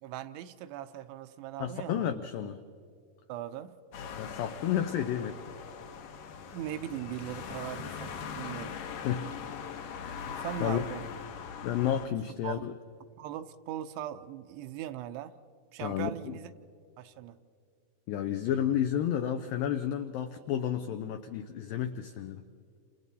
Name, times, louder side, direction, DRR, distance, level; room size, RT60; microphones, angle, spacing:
voice 1, 0.0-2.1 2.4-2.5 3.3-3.8 6.5-8.8 10.4-11.0 12.4-12.7 13.2-15.4 15.7-16.5 17.0-17.4, right 12 dB, 80° right, 10 dB, 2.7 m, -39 dB
voice 2, 1.6-2.6 4.2-5.4 9.0-9.4 9.9-10.9 11.6-12.7 15.8-16.1 18.1-22.4, left 10 dB, 85° left, 8 dB, 2.0 m, -31 dB
sound 1, 3.9-12.1, left 6 dB, 65° left, 2.2 m, -41 dB
28.5 x 28.0 x 4.1 m, 2.3 s
omnidirectional pair, 5.1 m